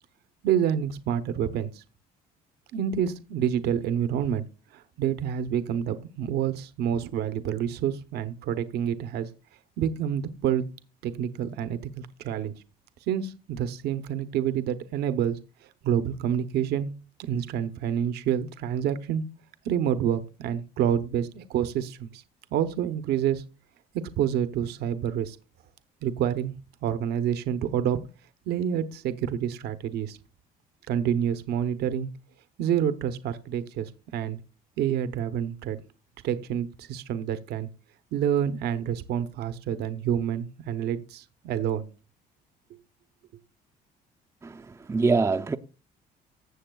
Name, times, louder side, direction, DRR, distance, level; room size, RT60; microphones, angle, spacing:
voice 1, 0.4-1.8 2.7-4.4 4.7-9.3 9.8-10.6 11.0-12.5 13.1-15.4 15.8-16.9 17.2-19.2 19.6-22.2 22.5-23.4 24.2-25.4 26.0-26.5 26.8-28.0 28.5-30.2 30.9-32.1 32.6-34.4 34.8-35.8 36.2-37.7 38.1-41.9, right 9 dB, 75° right, 0.8 m, -28 dB
voice 2, 44.4-45.6, right 4 dB, 15° right, 0.5 m, -25 dB
16.0 x 7.1 x 2.3 m
cardioid pair, 110°, 17 cm